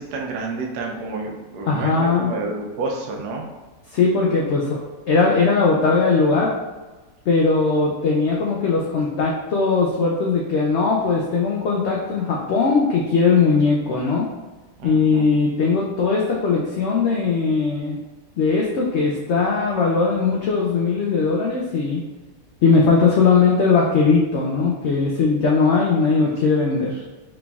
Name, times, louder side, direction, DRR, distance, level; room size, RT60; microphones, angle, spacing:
voice 1, 0.0-3.5 14.8-15.3, right 3 dB, 80° right, 0 dB, 1.2 m, -29 dB
voice 2, 1.7-2.3 3.9-4.8 5.1-6.5 7.3-14.3 14.8-18.0 18.4-22.0 22.6-27.0, left 4 dB, 85° left, -3 dB, 0.6 m, -19 dB
4.0 x 3.3 x 2.3 m, 1.2 s
omnidirectional pair, 1.7 m